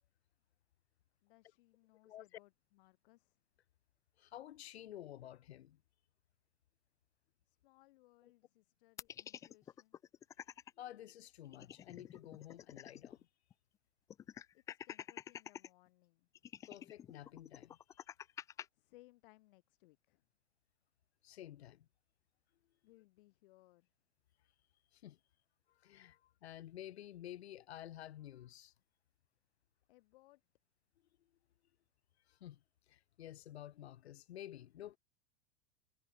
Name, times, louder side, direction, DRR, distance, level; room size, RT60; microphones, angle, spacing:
voice 1, 1.2-3.4 7.5-10.0 14.5-16.3 18.5-20.2 22.8-23.9 29.9-30.4, left 20 dB, 55° left, 7.7 m, -66 dB
voice 2, 2.0-2.4 4.2-5.8 8.2-8.3 10.8-13.3 16.7-18.1 21.2-21.9 24.9-25.2 25.7-28.7 32.3-35.0, left 12 dB, 85° left, 6.6 m, -52 dB
sound 1, 9.0-10.7 11.1-11.2 11.4-13.2 13.5-13.6 14.1-15.7 16.3-18.6, left 9 dB, 10° left, 0.3 m, -49 dB
supercardioid pair, 155°, 31 cm